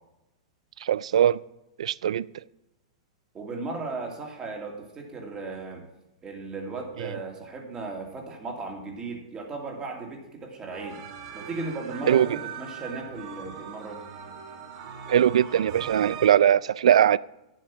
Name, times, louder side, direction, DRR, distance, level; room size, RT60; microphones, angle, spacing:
voice 1, 0.8-1.4 1.8-2.2 7.0-7.1 12.1-12.3 15.1-17.2, right 10 dB, 80° right, 0.3 m, -20 dB
voice 2, 3.3-5.8 6.2-11.0 11.3-14.0, right 3 dB, 20° right, 2.4 m, -36 dB
sound 1, 10.7-16.3, right 7 dB, 55° right, 1.7 m, -40 dB
9.4 x 7.7 x 6.0 m
hypercardioid pair, 125°, 3 cm